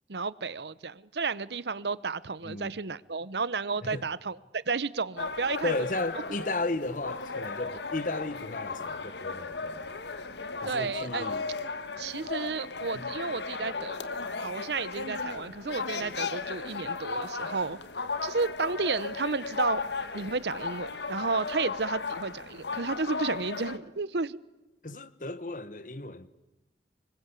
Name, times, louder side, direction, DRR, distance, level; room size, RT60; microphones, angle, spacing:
voice 1, 0.1-5.7 10.6-11.3 12.0-17.8 18.2-19.8 20.1-24.4, right 4 dB, 80° right, 0.9 m, -32 dB
voice 2, 2.4-2.8 3.8-4.1 5.6-9.9 10.6-11.5 24.8-26.3, left 2 dB, 50° left, 1.3 m, -34 dB
sound 1, 5.2-23.8, left 4 dB, 80° left, 1.5 m, -36 dB
25.5 x 21.5 x 8.4 m
head